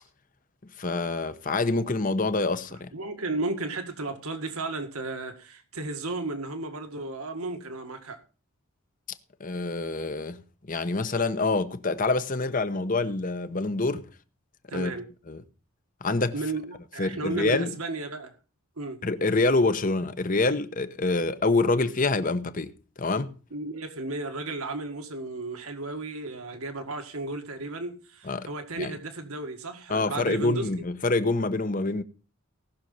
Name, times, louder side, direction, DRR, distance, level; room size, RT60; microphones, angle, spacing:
voice 1, 0.8-2.9 9.4-10.4 10.7-14.1 14.7-14.9 15.3-15.4 16.0-16.3 17.0-17.7 19.0-23.3 28.3-28.5 28.8-28.9 29.9-32.0, left 3 dB, 35° left, 0.9 m, -26 dB
voice 2, 2.7-8.2 14.7-15.1 16.3-18.3 18.8-19.0 23.5-30.7, right 2 dB, 80° right, 1.9 m, -34 dB
18.5 x 6.4 x 5.5 m
head